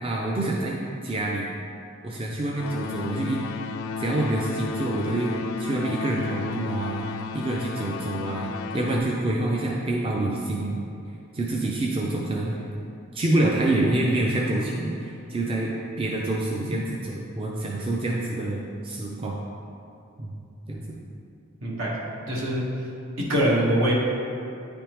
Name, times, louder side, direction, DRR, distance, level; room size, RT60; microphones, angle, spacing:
voice 1, 0.0-1.5 2.0-3.4 4.0-7.1 7.3-10.8 11.3-12.5 13.1-15.7 16.0-19.4 20.2-20.3 20.7-21.0, right 2 dB, 25° right, -3 dB, 0.4 m, -27 dB
sound 1, 2.5-9.0, left 4 dB, 85° left, 0.3 m, -33 dB
voice 2, 21.6-21.9 22.3-22.6 23.3-23.9, right 1 dB, 70° right, -4 dB, 1.2 m, -24 dB
9.2 x 3.5 x 3.0 m, 2.7 s
head